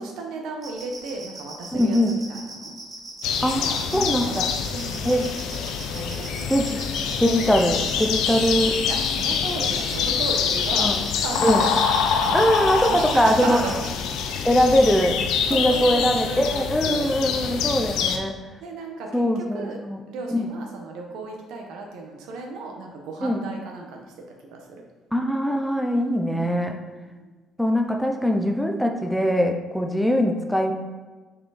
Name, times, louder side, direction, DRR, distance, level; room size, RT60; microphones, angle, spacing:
voice 1, 0.0-2.7 3.5-4.4 4.7-5.3 5.9-6.8 8.8-10.9 11.2-11.6 12.2-12.5 12.9-13.8 15.5-17.0 17.3-17.7 18.6-19.8 20.1-24.1 24.5-24.8 26.7-27.4, right 3 dB, 85° right, 1 dB, 1.2 m, -35 dB
sound 1, 0.6-13.9, right 3 dB, 30° right, 1.7 m, -39 dB
voice 2, 1.7-2.2 3.4-3.7 3.9-4.5 5.0-5.3 6.5-6.8 7.2-8.8 9.8-9.9 10.8-11.0 11.4-11.7 12.3-13.6 14.4-15.2 15.5-18.4 19.1-20.0 20.3-20.5 23.2-23.5 25.1-26.8 27.6-30.7, equal, ahead, 3 dB, 0.5 m, -22 dB
sound 2, 3.2-18.2, left 6 dB, 85° left, 0.7 m, -25 dB
6.2 x 4.8 x 4.1 m, 1.3 s
cardioid pair, 145°, 0 cm